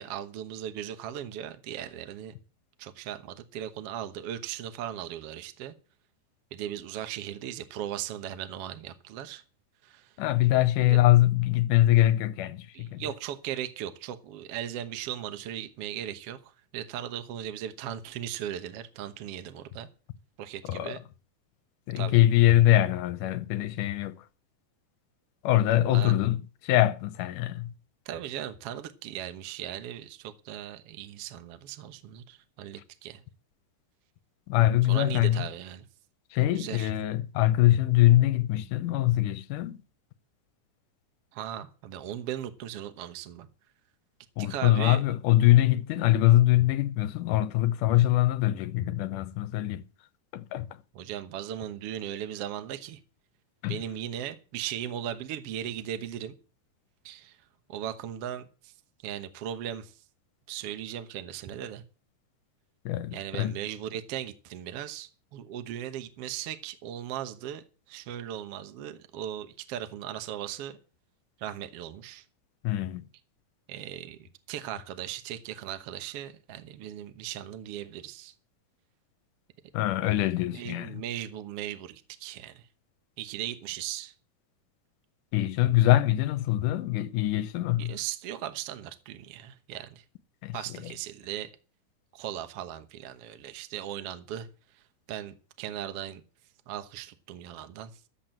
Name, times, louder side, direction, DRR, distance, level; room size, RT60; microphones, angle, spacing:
voice 1, 0.0-2.3 2.8-5.7 6.5-9.4 9.8-10.1 10.9-11.0 12.7-19.9 20.4-21.0 22.0-22.2 25.7-26.1 28.1-33.2 34.8-35.9 36.4-36.9 41.3-43.5 44.4-45.0 50.9-53.0 53.7-56.3 57.0-57.4 57.7-58.7 59.0-60.0 60.5-61.8 63.1-70.8 71.4-72.3 73.7-78.3 80.5-82.7 83.2-84.1 87.8-90.0 90.5-91.5 92.1-94.5 94.7-96.2 96.7-97.9, right 11 dB, 60° right, 1.8 m, -38 dB
voice 2, 10.2-13.0 20.7-21.0 21.9-24.2 25.4-27.7 34.5-35.4 36.3-39.8 44.4-49.8 50.3-50.7 53.6-53.8 62.9-63.5 72.6-73.0 79.7-81.0 85.3-87.9 90.4-90.6, left 14 dB, 85° left, 2.4 m, -23 dB
13.0 x 7.6 x 7.6 m
omnidirectional pair, 3.6 m